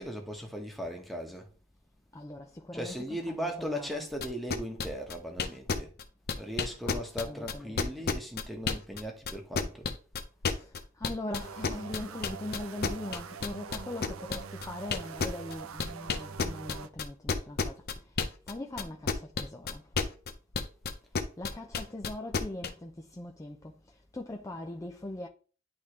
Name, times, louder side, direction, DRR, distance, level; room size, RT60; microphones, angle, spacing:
voice 1, 0.0-1.5 2.7-5.9 6.4-9.9, equal, ahead, 1.3 m, -38 dB
voice 2, 2.1-4.0 6.9-8.2 11.0-17.7 18.5-19.8 21.4-23.7 24.1-25.3, left 1 dB, 15° left, 0.5 m, -41 dB
sound 1, 4.2-9.0 9.3-18.5 18.8-22.7, left 5 dB, 50° left, 0.8 m, -30 dB
sound 2, 11.4-16.9, right 6 dB, 90° right, 0.5 m, -44 dB
10.5 x 3.6 x 3.2 m
head